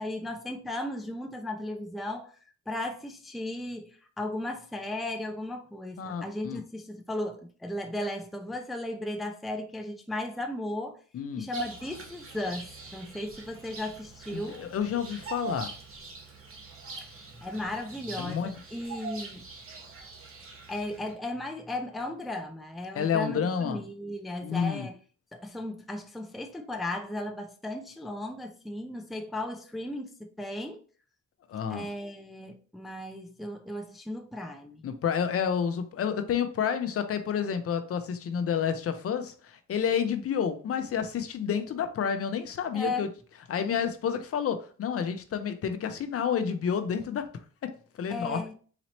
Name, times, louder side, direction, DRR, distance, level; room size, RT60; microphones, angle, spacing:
voice 1, 0.0-2.3 2.7-11.0 11.4-14.7 17.4-19.5 20.7-25.0 25.3-30.8 31.7-34.9 42.7-43.1 48.1-48.5, left 1 dB, ahead, 0.4 m, -36 dB
voice 2, 6.0-6.6 11.1-11.5 14.3-15.7 18.2-18.5 22.9-23.8 24.4-24.9 31.5-31.9 34.8-43.1 43.5-47.3 47.6-48.4, left 7 dB, 50° left, 0.6 m, -30 dB
Bird vocalization bird call bird song, 11.5-21.1, right 3 dB, 45° right, 1.1 m, -43 dB
4.1 x 2.9 x 2.8 m
cardioid pair, 90°, 30 cm